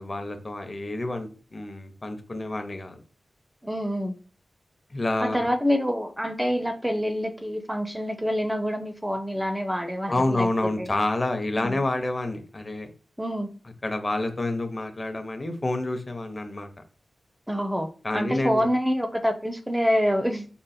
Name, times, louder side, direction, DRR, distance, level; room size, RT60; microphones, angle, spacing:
voice 1, 0.0-3.0 4.9-5.5 10.1-12.9 13.8-16.7 18.0-18.7, left 2 dB, 35° left, 6 dB, 0.7 m, -28 dB
voice 2, 3.6-4.2 5.2-10.5 10.8-10.9 11.6-11.8 13.2-13.5 17.5-20.5, equal, 10° right, 7 dB, 0.5 m, -26 dB
3.7 x 2.1 x 4.1 m, 0.37 s
wide cardioid pair, 75°, 0 cm